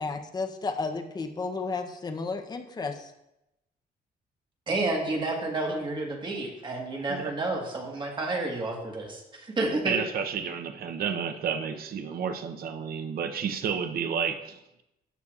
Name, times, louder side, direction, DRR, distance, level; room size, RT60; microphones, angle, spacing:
voice 1, 0.0-3.0, left 4 dB, 25° left, 5 dB, 0.7 m, -32 dB
voice 2, 4.7-10.0, right 2 dB, 30° right, 1 dB, 1.4 m, -30 dB
voice 3, 9.9-14.8, right 7 dB, 65° right, 7 dB, 0.7 m, -31 dB
13.0 x 6.9 x 2.4 m, 0.89 s
wide cardioid pair, 170°, 17 cm